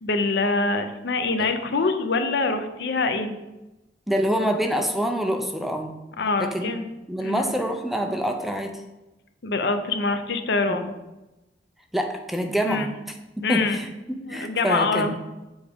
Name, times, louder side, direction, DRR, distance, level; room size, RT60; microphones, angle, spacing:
voice 1, 0.0-3.3 6.2-6.9 7.2-7.5 9.4-10.9 12.6-12.9 13.4-13.8 14.2-15.1, left 3 dB, 65° left, 8 dB, 0.6 m, -24 dB
voice 2, 4.1-6.0 6.4-6.7 7.1-8.8 10.7-10.8 11.9-12.9 13.5-13.9 14.3-15.1, equal, ahead, 4 dB, 0.5 m, -26 dB
7.1 x 4.8 x 3.5 m, 1.0 s
head